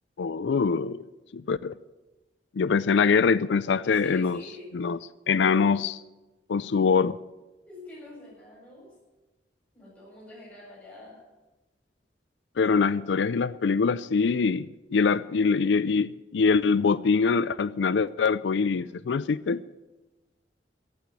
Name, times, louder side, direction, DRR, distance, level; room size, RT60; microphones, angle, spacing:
voice 1, 0.2-1.0 1.3-1.7 2.6-4.4 4.7-5.0 5.3-6.0 6.5-7.2 12.6-19.6, left 5 dB, 85° left, 17 dB, 0.4 m, -24 dB
voice 2, 3.8-4.9 7.7-8.9 9.7-11.2 15.0-15.7, left 1 dB, 10° left, -5 dB, 7.2 m, -47 dB
15.0 x 8.5 x 9.7 m, 1.1 s
head